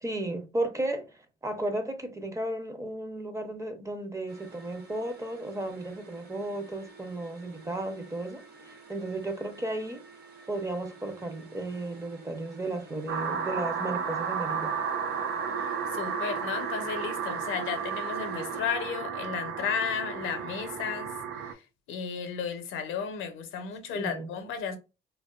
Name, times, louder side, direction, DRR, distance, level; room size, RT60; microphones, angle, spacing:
voice 1, 0.0-10.0 10.5-14.8 23.9-24.3, right 1 dB, 15° right, 0.5 m, -34 dB
sound 1, 4.3-18.6, right 5 dB, 55° right, 0.9 m, -51 dB
sound 2, 13.1-21.5, right 6 dB, 75° right, 0.5 m, -33 dB
voice 2, 15.6-21.6 21.9-24.8, left 7 dB, 85° left, 0.6 m, -34 dB
2.5 x 2.2 x 2.2 m
cardioid pair, 90°, 20 cm